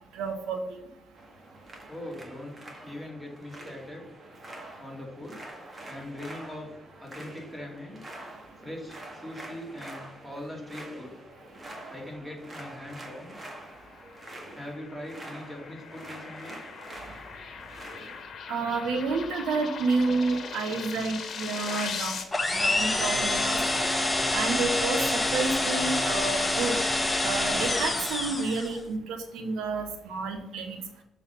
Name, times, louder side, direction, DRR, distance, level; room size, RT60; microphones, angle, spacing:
voice 1, 0.1-0.8 18.5-22.2 22.6-23.9 24.3-26.8 27.2-30.8, right 4 dB, 85° right, 6 dB, 1.0 m, -30 dB
sound 1, 1.1-18.2, right 1 dB, 30° right, 1.8 m, -46 dB
voice 2, 1.9-2.5 2.8-4.1 4.8-5.4 5.9-6.7 7.0-8.0 8.6-11.1 11.9-13.3 14.5-16.6, left 1 dB, 10° right, -1 dB, 2.8 m, -41 dB
sound 2, 13.4-22.2, left 6 dB, 55° left, 1.3 m, -40 dB
sound 3, 22.3-28.8, left 2 dB, 15° left, 1.0 m, -27 dB
6.8 x 4.0 x 5.7 m, 0.87 s
cardioid pair, 90°, 0 cm